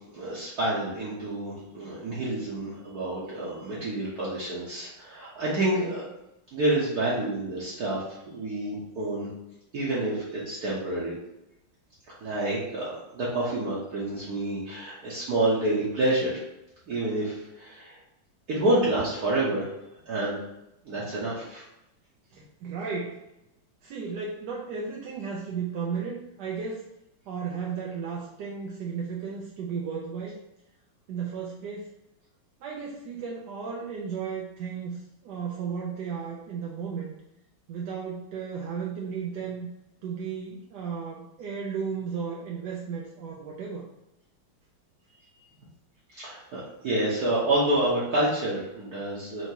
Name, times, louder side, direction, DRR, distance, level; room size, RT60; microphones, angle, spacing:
voice 1, 0.1-6.0 6.5-9.3 9.7-11.1 12.2-16.4 16.9-18.0 18.5-19.7 20.1-20.4 20.8-21.7 46.1-49.5, right 1 dB, 55° right, -7 dB, 1.2 m, -28 dB
voice 2, 22.3-23.2 23.8-26.8 27.3-30.4 31.1-31.9 32.6-37.1 37.7-39.7 40.0-43.8, right 6 dB, 75° right, -2 dB, 1.0 m, -34 dB
4.7 x 2.8 x 2.8 m, 0.88 s
omnidirectional pair, 2.2 m